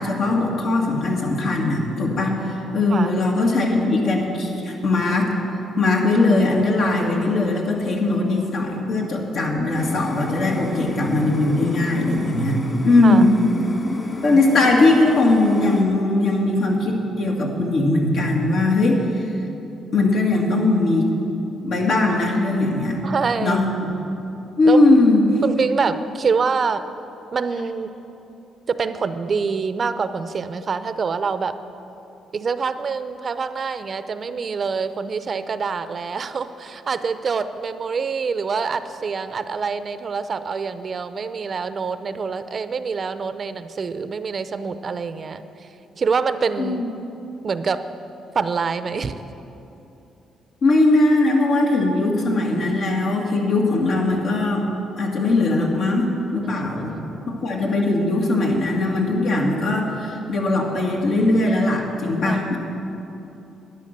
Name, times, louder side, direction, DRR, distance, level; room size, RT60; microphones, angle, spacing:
voice 1, 0.0-5.3 5.8-13.4 14.2-19.3 19.9-21.1 21.6-23.0 23.4-23.9 24.6-25.3 46.6-46.9 50.6-54.7 55.0-56.9 57.3-62.6, left 2 dB, 70° left, 0 dB, 2.2 m, -20 dB
sound 1, 9.7-15.8, left 2 dB, 30° left, 2.1 m, -32 dB
voice 2, 13.0-13.4 14.3-14.7 23.0-23.6 24.7-24.8 25.4-26.8 27.3-27.9 28.7-31.5 32.3-45.7 46.0-46.8 47.4-47.8 48.3-49.2 56.5-57.3 62.2-62.4, right 5 dB, 45° right, 11 dB, 0.6 m, -26 dB
12.0 x 9.9 x 6.7 m, 2.9 s
cardioid pair, 90°, 0 cm